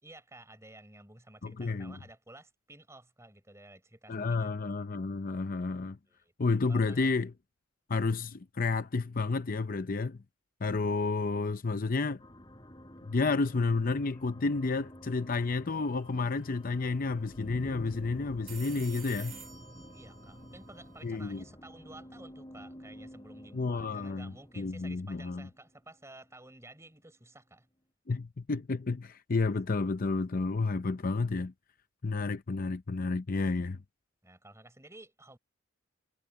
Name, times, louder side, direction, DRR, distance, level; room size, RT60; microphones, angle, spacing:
voice 1, 0.0-4.6 6.0-6.3 6.7-7.1 19.9-27.7 34.2-35.4, right 2 dB, 15° right, 4.3 m, -53 dB
voice 2, 1.4-2.0 4.1-6.0 6.4-7.3 7.9-10.2 10.6-12.2 13.1-19.4 21.0-21.4 23.5-25.5 28.1-31.5 32.0-33.8, left 3 dB, 45° left, 0.6 m, -31 dB
sound 1, 12.2-26.3, equal, 20° left, 6.8 m, -50 dB
sound 2, 15.8-16.1 16.3-16.4 18.2-21.4, right 7 dB, 45° right, 2.4 m, -50 dB
head